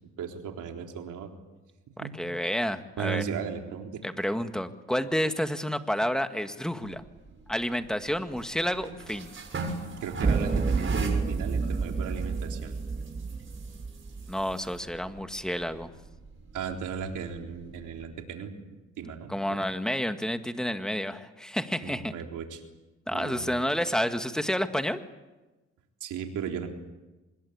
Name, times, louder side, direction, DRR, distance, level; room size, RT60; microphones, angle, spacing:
voice 1, 0.2-1.3 2.0-2.2 3.0-4.0 10.0-12.8 16.5-18.5 19.0-19.3 21.8-22.6 23.1-23.5 26.0-26.7, right 7 dB, 80° right, 3 dB, 3.9 m, -36 dB
voice 2, 2.1-3.2 4.0-7.0 7.5-9.3 14.3-15.9 19.3-22.1 23.1-25.0, equal, ahead, 8 dB, 1.9 m, -30 dB
sound 1, 6.8-18.1, right 3 dB, 40° right, 6.5 m, -42 dB
sound 2, 10.2-14.5, right 4 dB, 20° right, 0.8 m, -29 dB
26.0 x 21.5 x 8.7 m, 1.1 s
cardioid pair, 90°, 30 cm